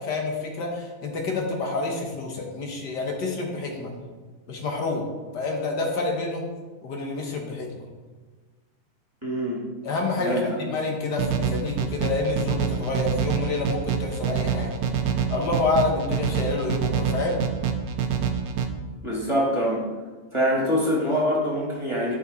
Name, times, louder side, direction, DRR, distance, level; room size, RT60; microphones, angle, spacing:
voice 1, 0.0-3.9 4.5-5.0 5.3-6.5 6.8-7.7 9.8-14.8 15.3-17.4, left 3 dB, 80° left, 1 dB, 1.9 m, -28 dB
voice 2, 9.2-9.6 10.2-10.6 19.0-19.8 20.3-22.1, equal, 15° right, -5 dB, 1.9 m, -24 dB
sound 1, 11.2-18.7, right 7 dB, 65° right, 1.1 m, -26 dB
10.5 x 5.3 x 4.0 m, 1.3 s
omnidirectional pair, 1.8 m